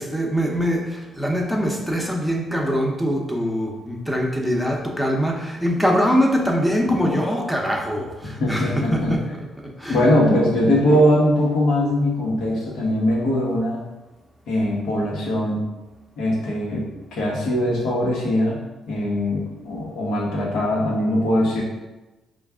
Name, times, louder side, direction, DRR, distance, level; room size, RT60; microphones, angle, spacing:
voice 1, 0.0-10.1, equal, ahead, -1 dB, 0.7 m, -23 dB
voice 2, 8.4-9.2 9.9-13.8 14.5-15.7 16.2-18.6 18.9-21.6, left 1 dB, 85° left, -3 dB, 1.1 m, -21 dB
4.5 x 2.4 x 3.5 m, 1.1 s
cardioid pair, 90°, 0 cm